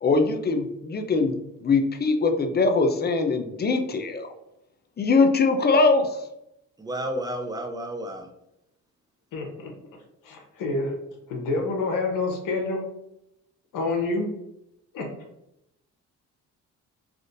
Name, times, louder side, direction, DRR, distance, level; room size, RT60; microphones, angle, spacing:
voice 1, 0.0-4.3 5.0-6.3, left 3 dB, 30° left, 6 dB, 0.5 m, -22 dB
voice 2, 6.8-8.3, right 1 dB, 10° right, 4 dB, 0.6 m, -31 dB
voice 3, 9.3-9.7 10.2-10.9 11.3-12.9 13.7-14.3 14.9-15.1, left 3 dB, 70° left, 2 dB, 0.9 m, -27 dB
3.5 x 2.5 x 2.5 m, 0.85 s
supercardioid pair, 60°, 33 cm